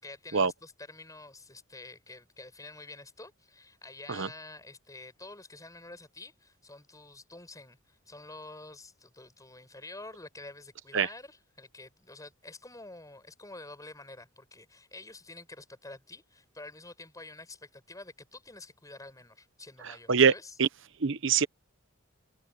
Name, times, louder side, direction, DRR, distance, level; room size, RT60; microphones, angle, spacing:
voice 1, 0.0-20.5, left 2 dB, 15° left, 6.0 m, -48 dB
voice 2, 19.8-20.3 20.6-20.7 21.0-21.5, right 6 dB, 60° right, 0.9 m, -24 dB
head